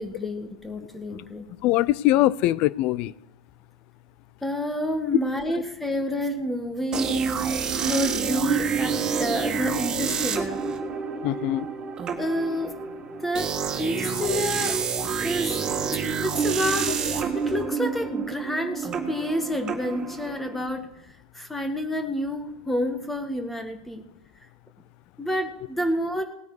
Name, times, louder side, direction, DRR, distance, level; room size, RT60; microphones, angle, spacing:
voice 1, 0.0-1.4 4.4-7.1 7.7-10.6 12.2-12.7 13.2-13.5 13.8-14.8 15.0-15.6 16.2-20.9 21.3-24.0 25.2-26.2, equal, 10° left, 1.6 m, -29 dB
voice 2, 1.6-3.1 5.5-5.6 7.1-7.2 7.5-7.6 11.2-11.7, left 15 dB, 55° left, 0.5 m, -23 dB
sound 1, 6.9-20.6, right 6 dB, 30° right, 2.0 m, -28 dB
18.0 x 9.3 x 4.9 m
hypercardioid pair, 100°, 2 cm